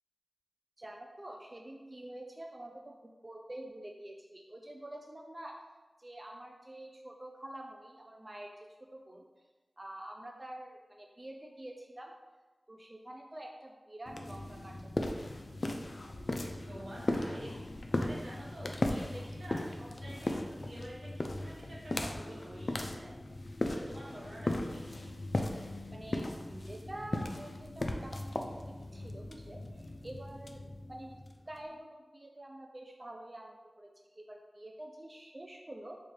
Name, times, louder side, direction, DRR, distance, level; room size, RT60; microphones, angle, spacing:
voice 1, 0.8-5.6 6.0-9.3 9.8-12.1 12.7-15.3 25.9-31.1 31.5-36.0, right 1 dB, 30° right, 1 dB, 0.3 m, -47 dB
sound 1, 14.1-31.6, left 2 dB, 55° left, 0.3 m, -37 dB
voice 2, 16.7-24.9, right 1 dB, 85° right, -7 dB, 1.1 m, -48 dB
3.2 x 2.4 x 4.2 m, 1.2 s
wide cardioid pair, 60°, 0 cm